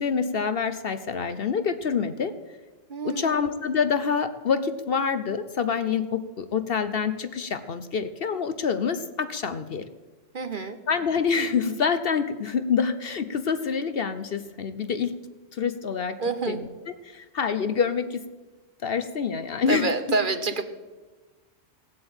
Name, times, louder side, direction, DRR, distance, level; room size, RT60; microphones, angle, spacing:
voice 1, 0.0-2.3 3.0-9.9 10.9-15.1 15.5-16.2 16.5-16.7 17.0-18.2 18.8-20.2, left 6 dB, 55° left, 11 dB, 0.9 m, -26 dB
voice 2, 2.9-3.5 10.3-10.8 16.2-16.6 19.7-20.7, right 4 dB, 45° right, 10 dB, 0.9 m, -28 dB
17.5 x 7.8 x 8.8 m, 1.3 s
omnidirectional pair, 1.3 m